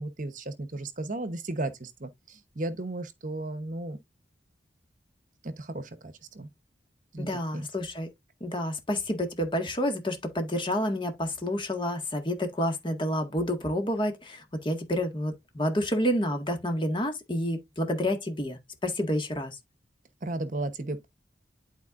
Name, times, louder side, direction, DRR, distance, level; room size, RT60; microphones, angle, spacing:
voice 1, 0.0-4.0 5.4-6.5 7.1-7.7 20.2-21.1, right 2 dB, 45° right, 1.0 m, -35 dB
voice 2, 7.2-8.1 8.4-19.6, equal, 30° left, 1.7 m, -29 dB
11.5 x 4.4 x 2.5 m
head